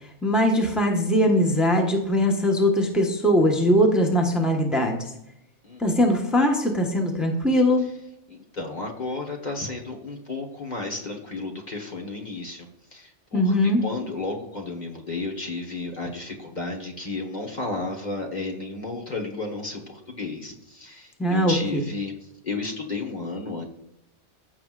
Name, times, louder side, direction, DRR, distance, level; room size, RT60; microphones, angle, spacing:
voice 1, 0.2-5.1 5.8-7.9 13.3-13.8 21.2-21.8, equal, ahead, 1 dB, 1.1 m, -21 dB
voice 2, 8.3-22.1 22.4-23.6, left 3 dB, 40° left, 1 dB, 1.4 m, -33 dB
15.0 x 6.1 x 2.5 m, 0.83 s
omnidirectional pair, 1.2 m